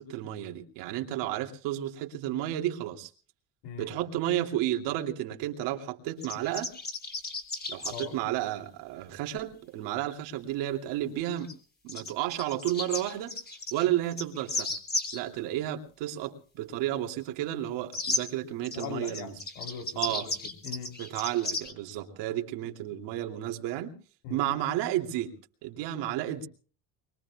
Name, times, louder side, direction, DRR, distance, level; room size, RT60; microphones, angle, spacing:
voice 1, 0.0-3.1 3.8-6.7 7.7-11.5 11.8-13.4 13.7-14.7 15.1-19.3 20.0-20.3 21.0-23.9 24.3-25.4 25.6-26.5, right 13 dB, 80° right, 2.9 m, -32 dB
voice 2, 3.6-4.0 7.9-8.2 18.7-21.0 24.2-24.5, left 7 dB, 75° left, 3.7 m, -41 dB
sound 1, 6.2-8.1 11.4-11.5 11.9-15.2 17.9-18.2 18.6-21.7, left 2 dB, 20° left, 3.6 m, -34 dB
24.5 x 22.5 x 2.4 m
cardioid pair, 130°, 43 cm